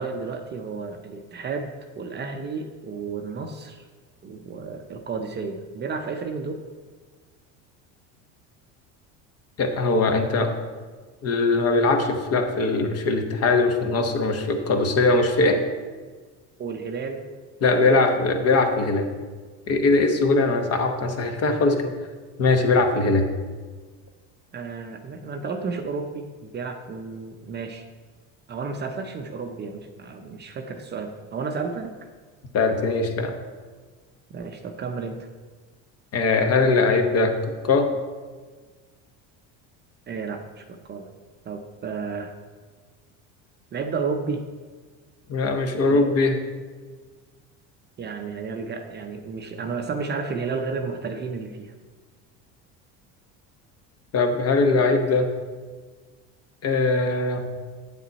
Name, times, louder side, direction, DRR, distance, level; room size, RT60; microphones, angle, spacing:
voice 1, 0.0-3.8 4.2-6.6 16.6-17.3 17.8-18.1 24.5-27.8 28.5-31.9 34.3-35.3 40.1-41.1 41.4-42.3 43.7-44.4 45.9-46.0 48.0-51.7, right 4 dB, 30° right, 5 dB, 0.6 m, -32 dB
voice 2, 9.6-10.5 11.2-15.6 17.6-19.1 19.7-21.9 22.4-23.3 32.5-33.3 36.1-37.4 37.6-37.9 45.3-46.4 54.1-55.3 56.6-57.5, left 3 dB, 40° left, 5 dB, 1.1 m, -21 dB
8.5 x 7.3 x 4.1 m, 1.4 s
cardioid pair, 125°, 37 cm